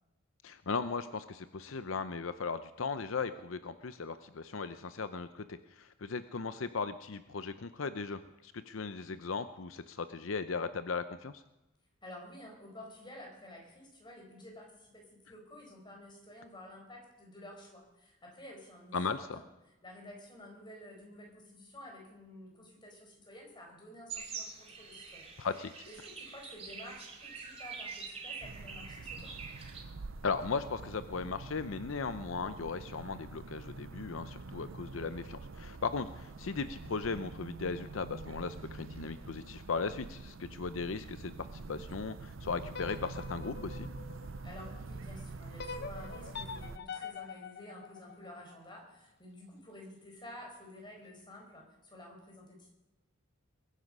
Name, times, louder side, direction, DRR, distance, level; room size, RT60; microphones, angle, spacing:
voice 1, 0.4-11.4 18.9-19.4 25.4-25.7 30.2-43.9, left 4 dB, 80° left, 12 dB, 0.7 m, -37 dB
voice 2, 12.0-19.4 19.8-25.3 25.9-29.3 44.4-52.7, left 1 dB, 25° left, 0 dB, 4.7 m, -51 dB
sound 1, 24.1-29.8, right 5 dB, 30° right, 2.5 m, -45 dB
sound 2, 28.4-46.8, right 3 dB, 75° right, 0.6 m, -46 dB
sound 3, 42.7-44.9 45.6-48.7, left 5 dB, 55° left, 0.9 m, -45 dB
22.5 x 10.0 x 5.5 m, 0.99 s
head